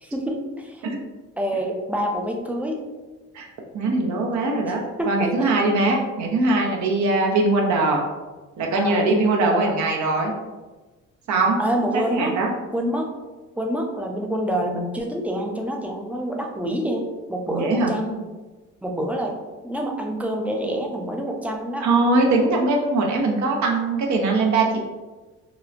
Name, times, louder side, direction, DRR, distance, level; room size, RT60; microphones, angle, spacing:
voice 1, 0.0-0.8 1.4-2.8 5.0-5.6 8.8-9.8 11.3-12.3 12.7-13.1 13.6-18.2 18.8-19.3 19.6-21.9, equal, 5° right, 1 dB, 0.3 m, -27 dB
voice 2, 3.7-8.1 8.6-10.3 11.3-11.6 11.9-12.5 17.5-17.9 21.8-24.8, right 2 dB, 70° right, 0 dB, 0.6 m, -21 dB
2.9 x 2.0 x 2.4 m, 1.2 s
cardioid pair, 90°, 30 cm